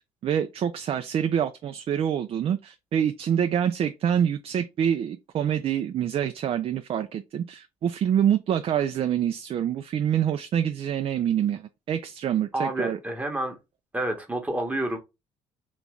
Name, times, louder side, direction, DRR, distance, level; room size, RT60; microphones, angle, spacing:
voice 1, 0.2-13.0, right 9 dB, 50° right, 0.4 m, -26 dB
voice 2, 12.5-13.6 13.9-15.0, right 1 dB, 10° right, 1.0 m, -29 dB
3.0 x 2.6 x 3.4 m
cardioid pair, 80°, 13 cm